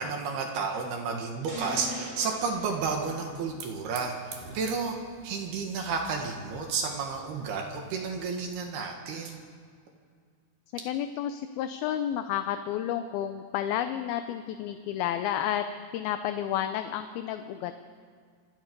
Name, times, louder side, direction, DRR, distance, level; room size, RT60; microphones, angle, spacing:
voice 1, 0.0-5.0 5.2-9.4, right 5 dB, 70° right, 2 dB, 3.7 m, -32 dB
sound 1, 1.5-3.8, equal, 30° right, 6.7 m, -41 dB
Hiss / Fire, 1.9-8.8, right 6 dB, 85° right, 4.5 m, -51 dB
voice 2, 10.7-15.6 15.9-17.7, left 10 dB, 75° left, 8 dB, 2.4 m, -31 dB
27.0 x 20.5 x 5.4 m, 2.1 s
omnidirectional pair, 4.8 m